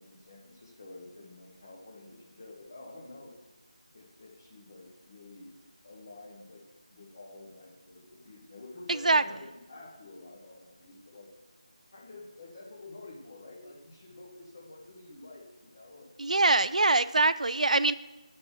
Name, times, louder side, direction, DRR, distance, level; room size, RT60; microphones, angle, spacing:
voice 1, 0.0-3.3 3.9-5.5 5.8-6.6 6.9-11.3 11.9-16.1 16.6-16.7, left 2 dB, 20° left, -3 dB, 1.0 m, -49 dB
voice 2, 8.9-9.2 16.2-17.9, right 2 dB, 80° right, 15 dB, 0.3 m, -23 dB
8.9 x 3.6 x 5.4 m, 1.1 s
figure-of-eight pair, 180°, 4 cm